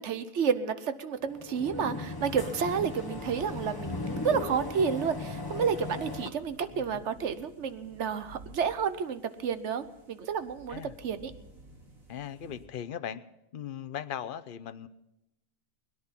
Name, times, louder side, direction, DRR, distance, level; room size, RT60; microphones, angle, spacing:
voice 1, 0.0-11.3, right 6 dB, 60° right, 12 dB, 1.2 m, -31 dB
sound 1, 1.3-6.3, left 3 dB, 20° left, 0.9 m, -37 dB
sound 2, 2.7-12.7, right 2 dB, 90° right, 3.0 m, -54 dB
voice 2, 6.7-7.0 10.7-11.0 12.1-13.2 13.5-14.9, left 9 dB, 50° left, 14 dB, 0.7 m, -39 dB
21.5 x 10.5 x 5.8 m, 0.89 s
omnidirectional pair, 1.4 m